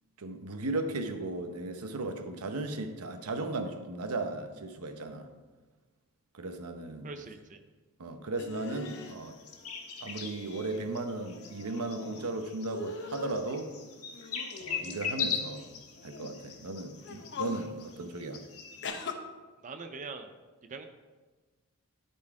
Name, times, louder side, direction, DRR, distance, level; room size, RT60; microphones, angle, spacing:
voice 1, 0.2-5.3 6.3-7.1 8.0-9.4 10.0-13.7 14.6-15.7 16.0-18.4, right 2 dB, 90° right, 7 dB, 0.8 m, -36 dB
voice 2, 7.0-7.6 19.6-20.3 20.7-20.9, right 4 dB, 35° right, 7 dB, 0.5 m, -42 dB
sound 1, 8.4-9.1 10.1-10.8 11.2-12.3 12.7-13.4 14.1-15.2 16.0-16.3 17.0-17.7 18.8-19.1, left 3 dB, 55° left, 0.8 m, -42 dB
sound 2, 8.8-18.9, left 7 dB, 80° left, 1.3 m, -40 dB
12.0 x 4.3 x 4.7 m, 1.3 s
head